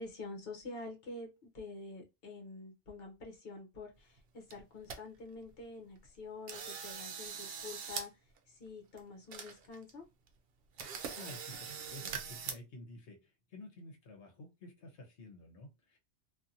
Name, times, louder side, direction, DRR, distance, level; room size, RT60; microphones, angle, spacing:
voice 1, 0.0-10.0, left 3 dB, 60° left, 1.1 m, -47 dB
sound 1, 4.2-4.3 4.5-5.0 5.4-5.5 6.0-6.2 6.5-8.1 8.4-8.5 9.0-9.1 9.3-9.9 10.3-10.4 10.8-12.5, right 6 dB, 65° right, 0.8 m, -42 dB
voice 2, 11.1-16.0, left 2 dB, 75° left, 1.1 m, -52 dB
2.7 x 2.6 x 2.5 m
omnidirectional pair, 1.2 m